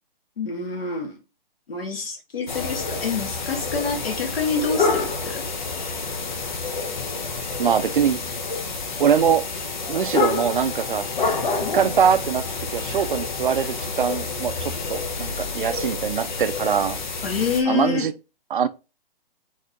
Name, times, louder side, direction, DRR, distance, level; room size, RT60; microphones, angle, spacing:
voice 1, 0.4-1.2 1.7-5.4 17.2-18.1, left 5 dB, 85° left, 2.1 m, -27 dB
sound 1, 2.5-17.6, left 4 dB, 55° left, 1.0 m, -28 dB
voice 2, 7.6-8.2 9.0-9.4 9.9-11.1 11.7-12.4 12.7-17.0 17.7-18.1 18.5-18.7, right 7 dB, 60° right, 0.5 m, -22 dB
4.2 x 3.3 x 3.7 m
hypercardioid pair, 175°, 29 cm